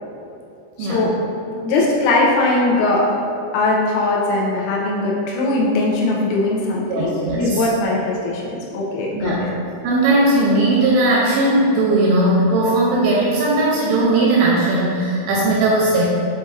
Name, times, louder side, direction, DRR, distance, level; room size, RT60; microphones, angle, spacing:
voice 1, 0.8-1.1 1.5-3.1 3.5-9.5, left 2 dB, 85° left, -4 dB, 3.1 m, -20 dB
voice 2, 6.9-7.7 9.2-9.4 9.8-16.0, right 2 dB, 80° right, -5 dB, 2.8 m, -17 dB
8.0 x 2.7 x 2.5 m, 2.5 s
omnidirectional pair, 5.8 m